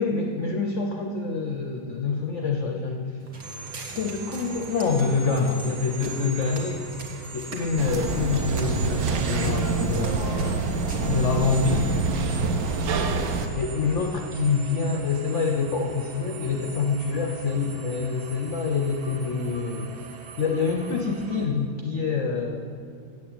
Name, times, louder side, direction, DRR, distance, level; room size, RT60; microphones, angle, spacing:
voice 1, 0.0-3.2 3.7-6.8 7.3-10.6 11.0-11.9 13.6-19.9 20.4-22.6, left 4 dB, 65° left, 3 dB, 0.7 m, -26 dB
Walk footsteps, 3.2-11.9, right 3 dB, 40° right, 1.6 m, -42 dB
sound 1, 3.4-21.5, right 4 dB, 85° right, 1.9 m, -42 dB
sound 2, 7.8-13.5, right 4 dB, 60° right, 1.0 m, -26 dB
8.5 x 7.6 x 8.8 m, 2.4 s
omnidirectional pair, 2.2 m